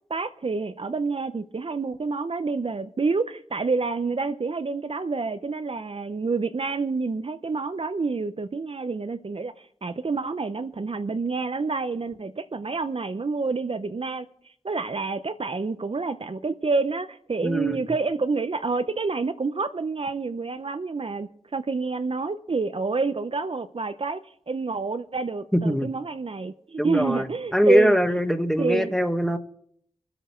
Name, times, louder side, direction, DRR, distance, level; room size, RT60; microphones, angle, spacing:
voice 1, 0.1-14.3 14.6-24.2 24.5-28.0 28.6-28.9, right 4 dB, 50° right, 0.8 m, -28 dB
voice 2, 17.4-17.8 25.5-25.9 26.8-27.3 27.5-29.4, equal, 5° left, 1.5 m, -22 dB
22.5 x 8.1 x 4.5 m
cardioid pair, 45°, 12 cm